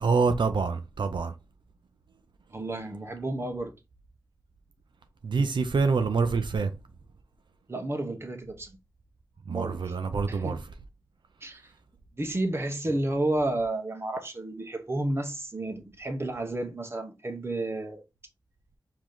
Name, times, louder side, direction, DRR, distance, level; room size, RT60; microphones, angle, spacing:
voice 1, 0.0-1.3 5.2-6.7 9.5-10.6, right 4 dB, 80° right, 0.5 m, -26 dB
voice 2, 2.5-3.7 7.7-8.7 9.5-9.9 10.3-10.6 11.4-11.6 12.2-18.0, right 1 dB, 30° right, 1.0 m, -31 dB
4.9 x 2.8 x 3.8 m
wide cardioid pair, 105°, 8 cm